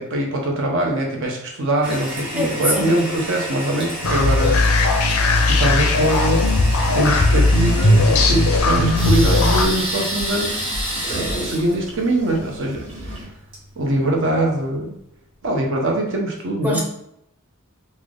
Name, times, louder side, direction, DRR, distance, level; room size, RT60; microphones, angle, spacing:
voice 1, 0.0-5.1 5.4-6.4 6.9-10.6 10.9-13.2 13.8-15.0 15.4-16.8, right 1 dB, 60° right, 0 dB, 0.8 m, -23 dB
Toilet flush, 1.8-14.5, equal, 25° right, 1.0 m, -30 dB
voice 2, 2.3-2.9 16.6-16.8, left 1 dB, 5° right, -2 dB, 0.6 m, -23 dB
sound 1, 4.0-9.6, left 2 dB, 75° left, 0.5 m, -17 dB
sound 2, 7.8-13.2, right 1 dB, 75° right, 1.5 m, -33 dB
3.3 x 2.0 x 3.6 m, 0.78 s
head